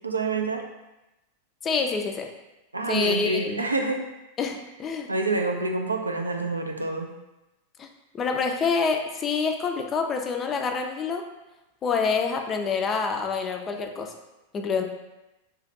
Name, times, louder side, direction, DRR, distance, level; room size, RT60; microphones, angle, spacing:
voice 1, 0.0-0.6 2.7-4.0 5.1-7.1, right 3 dB, 80° right, 3 dB, 0.3 m, -27 dB
voice 2, 1.6-2.3 2.9-3.7 4.4-5.1 7.8-7.9 8.1-11.3 11.8-14.1 14.5-14.8, left 5 dB, 25° left, 4 dB, 0.3 m, -27 dB
2.5 x 2.2 x 3.7 m, 0.99 s
figure-of-eight pair, 90°, 0 cm